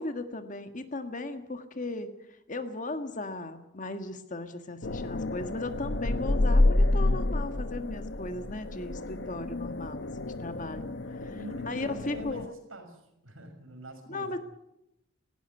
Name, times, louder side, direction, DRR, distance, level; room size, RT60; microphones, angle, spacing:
voice 1, 0.0-10.8 11.1-11.4 11.6-12.4 14.1-14.4, left 2 dB, 40° left, 8 dB, 1.6 m, -37 dB
sound 1, 4.8-12.5, left 2 dB, 60° left, 0.9 m, -29 dB
voice 2, 11.2-14.4, right 1 dB, 90° right, 6 dB, 6.5 m, -45 dB
18.5 x 17.5 x 9.5 m, 0.83 s
head